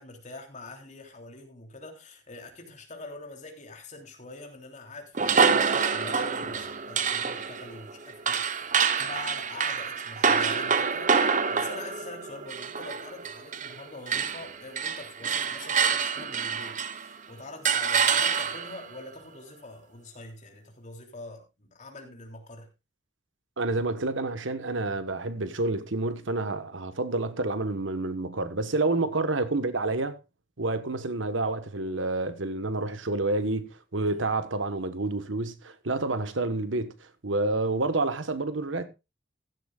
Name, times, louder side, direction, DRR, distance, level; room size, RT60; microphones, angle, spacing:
voice 1, 0.0-22.7 34.0-34.3, left 2 dB, 40° left, 3.3 m, -45 dB
sound 1, 5.1-13.8 14.1-17.1 17.6-18.8, right 6 dB, 40° right, 0.9 m, -26 dB
voice 2, 23.6-30.2 30.6-38.9, right 2 dB, 85° right, 1.3 m, -29 dB
15.5 x 12.0 x 2.4 m
head